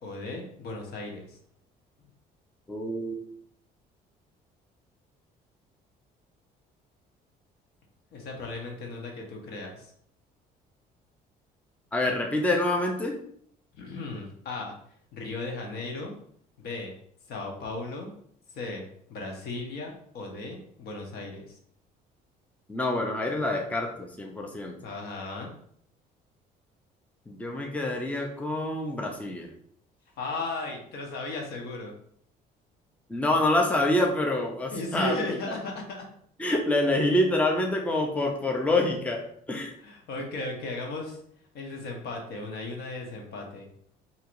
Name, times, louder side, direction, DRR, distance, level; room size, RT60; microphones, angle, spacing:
voice 1, 0.0-1.4 8.1-9.9 13.7-14.7 15.1-16.1 16.6-17.0 17.3-18.1 18.5-21.6 24.8-25.5 30.2-31.9 34.7-36.1 39.8-41.2 41.5-43.7, left 2 dB, 70° left, 1 dB, 1.0 m, -36 dB
voice 2, 2.7-3.2 11.9-13.2 22.7-24.8 27.3-29.5 33.1-35.4 36.4-39.7, left 1 dB, 10° left, 1 dB, 0.5 m, -26 dB
4.4 x 2.8 x 2.5 m, 0.65 s
cardioid pair, 110°, 17 cm